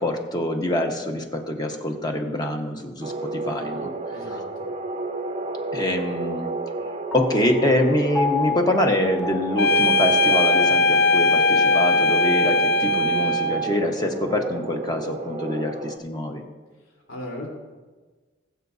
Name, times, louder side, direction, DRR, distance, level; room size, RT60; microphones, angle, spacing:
voice 1, 0.0-3.9 5.7-6.5 7.1-16.4, left 1 dB, 20° left, 3 dB, 1.2 m, -25 dB
sound 1, 3.0-16.0, right 3 dB, 30° right, 0.6 m, -32 dB
voice 2, 4.1-4.7 16.8-17.5, left 1 dB, 80° left, -3 dB, 3.6 m, -37 dB
Piano, 7.1-13.8, left 4 dB, ahead, 0.8 m, -34 dB
sound 2, 9.6-13.8, left 2 dB, 60° left, 0.5 m, -19 dB
21.0 x 7.9 x 2.7 m, 1.3 s
head